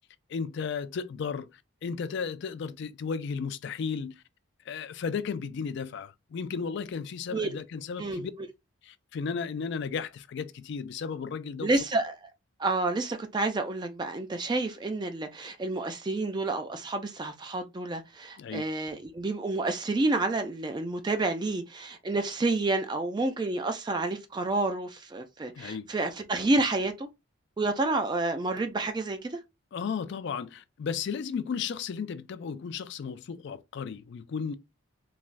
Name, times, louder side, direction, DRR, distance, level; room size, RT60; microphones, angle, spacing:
voice 1, 0.3-1.5 1.8-4.1 4.7-8.3 8.8-11.7 18.4-18.7 25.5-25.9 29.7-34.5, left 6 dB, 55° left, 0.3 m, -34 dB
voice 2, 11.6-12.2 12.6-27.1 27.6-29.4, right 2 dB, 20° right, 0.3 m, -29 dB
3.2 x 2.3 x 2.4 m
head